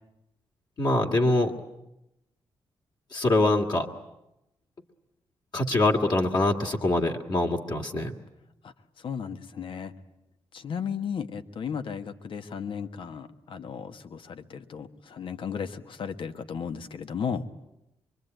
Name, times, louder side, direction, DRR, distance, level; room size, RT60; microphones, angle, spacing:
voice 1, 0.8-1.5 3.1-3.9 5.5-8.1, left 2 dB, 45° left, 0 dB, 2.3 m, -24 dB
voice 2, 8.6-9.9 10.5-17.4, left 7 dB, 65° left, 9 dB, 1.5 m, -35 dB
24.5 x 24.0 x 9.2 m, 0.89 s
cardioid pair, 80°, 10 cm